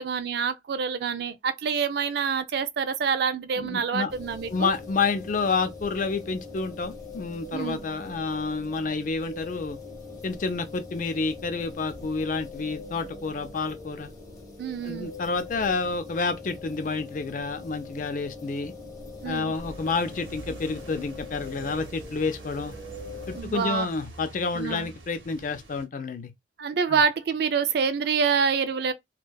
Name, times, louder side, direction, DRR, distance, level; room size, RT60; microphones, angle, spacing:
voice 1, 0.0-4.7 7.5-7.8 14.6-15.1 19.2-19.5 23.3-23.9 24.5-24.9 26.6-28.9, right 6 dB, 55° right, 0.3 m, -26 dB
voice 2, 3.6-4.1 4.5-9.8 10.2-14.1 14.8-18.7 19.2-22.7 23.3-26.3 26.9-27.0, left 4 dB, 45° left, 0.4 m, -29 dB
sound 1, 4.1-23.4, left 2 dB, 20° left, 0.8 m, -42 dB
sound 2, 19.6-25.8, right 3 dB, 90° right, 0.7 m, -45 dB
2.6 x 2.1 x 2.2 m
head